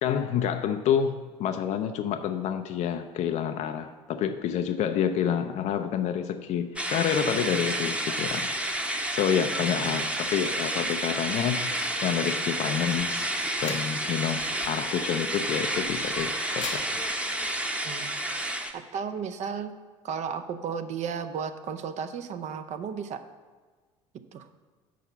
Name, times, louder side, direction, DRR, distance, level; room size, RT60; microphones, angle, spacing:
voice 1, 0.0-8.5 9.1-13.3 13.6-17.0, left 8 dB, 50° left, 7 dB, 0.5 m, -28 dB
sound 1, 6.8-18.7, right 1 dB, 5° right, 0.9 m, -30 dB
voice 2, 9.6-10.1 17.8-18.2 18.7-19.7 20.0-23.2 24.3-24.5, right 6 dB, 50° right, 9 dB, 0.6 m, -34 dB
sound 2, 12.1-17.6, left 4 dB, 85° left, 1.0 m, -44 dB
6.2 x 5.5 x 6.9 m, 1.4 s
hypercardioid pair, 65°, 15 cm